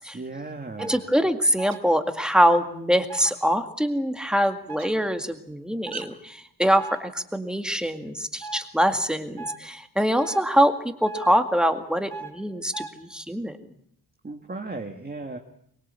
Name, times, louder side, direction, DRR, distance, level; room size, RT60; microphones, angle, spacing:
voice 1, 0.1-1.0 14.2-15.4, right 3 dB, 25° right, 4 dB, 1.8 m, -36 dB
voice 2, 0.8-13.6, equal, ahead, 7 dB, 2.0 m, -24 dB
sound 1, 0.8-1.0 1.6-1.8 2.3-2.6 3.1-3.3 4.7-4.9 5.9-6.1 6.8-7.0 8.4-8.6 9.4-9.6 10.2-10.4 11.1-11.3 12.1-12.3 12.7-12.9, right 3 dB, 85° right, 3.6 m, -37 dB
23.5 x 23.0 x 8.3 m, 0.67 s
wide cardioid pair, 165°, 38 cm